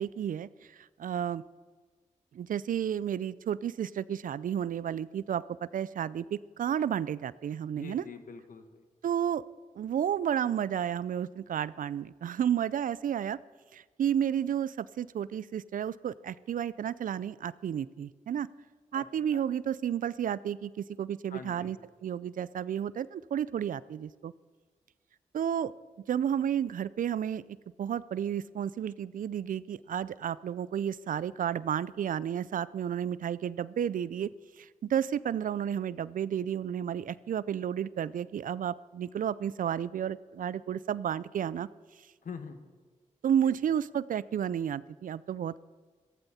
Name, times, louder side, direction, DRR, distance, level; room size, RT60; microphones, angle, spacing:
voice 1, 0.0-1.4 2.3-8.0 9.0-9.4 9.8-13.4 13.7-18.5 18.9-21.8 22.0-24.3 25.3-25.7 26.1-27.4 27.8-34.3 34.6-41.7 43.2-45.6, right 9 dB, 75° right, 19 dB, 0.5 m, -32 dB
voice 2, 7.7-8.9 18.9-19.1 19.3-19.4 21.3-21.7 42.2-42.6 43.4-43.6, left 5 dB, 70° left, 8 dB, 1.6 m, -45 dB
15.5 x 14.5 x 4.2 m, 1.4 s
supercardioid pair, 45°, 14 cm